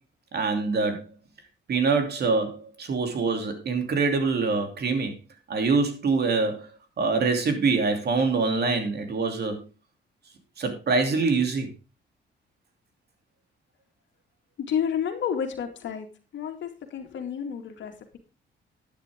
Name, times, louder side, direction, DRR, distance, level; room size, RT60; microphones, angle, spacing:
voice 1, 0.3-1.1 1.7-5.1 5.5-6.7 7.0-9.7 10.6-11.7, right 4 dB, 55° right, 5 dB, 2.9 m, -25 dB
voice 2, 14.7-16.1 16.3-18.2, left 8 dB, 65° left, 5 dB, 2.2 m, -30 dB
11.0 x 9.9 x 3.6 m, 0.32 s
cardioid pair, 90°, 20 cm